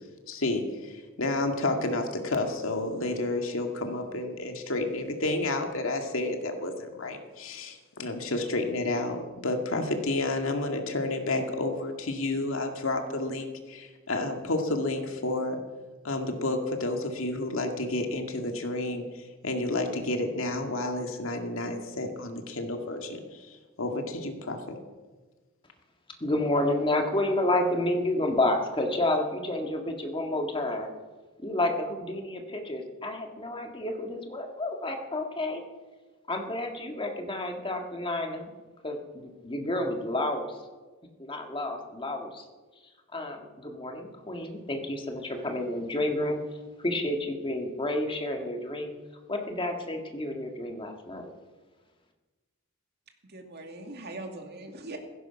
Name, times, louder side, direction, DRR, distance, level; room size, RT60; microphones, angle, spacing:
voice 1, 0.3-15.6 16.0-24.8, left 2 dB, 70° left, 4 dB, 2.2 m, -30 dB
voice 2, 26.2-30.9 31.4-35.6 36.3-38.5 38.8-40.6 41.2-42.5 43.1-46.4 46.8-48.9 49.3-51.3, left 1 dB, 25° left, 3 dB, 1.9 m, -30 dB
voice 3, 53.3-55.0, right 2 dB, 50° right, 4 dB, 2.4 m, -41 dB
15.5 x 15.5 x 5.8 m, 1.3 s
head